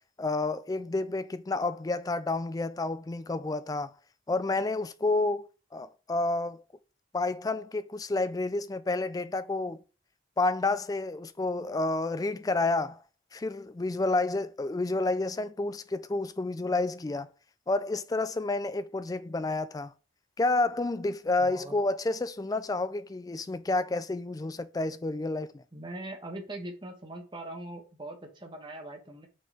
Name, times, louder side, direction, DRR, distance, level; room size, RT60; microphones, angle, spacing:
voice 1, 0.2-3.9 4.3-5.5 5.7-6.6 7.1-9.8 10.4-13.0 13.3-17.3 17.7-19.9 20.4-25.6, left 2 dB, 20° left, 0.3 m, -30 dB
voice 2, 21.4-21.7 25.7-29.3, right 1 dB, 25° right, 1.2 m, -41 dB
6.3 x 4.4 x 3.5 m
head